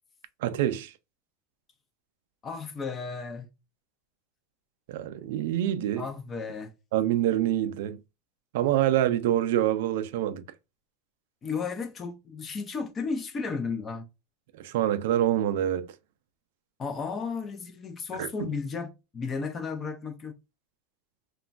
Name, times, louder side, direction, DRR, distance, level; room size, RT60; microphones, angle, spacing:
voice 1, 0.4-0.9 4.9-6.0 6.9-8.0 8.5-10.4 14.6-15.9 18.2-18.5, right 12 dB, 70° right, 0.3 m, -26 dB
voice 2, 2.4-3.5 6.0-6.7 11.4-14.0 16.8-20.3, left 5 dB, 20° left, 0.4 m, -34 dB
3.0 x 2.2 x 2.4 m
supercardioid pair, 160°, 0 cm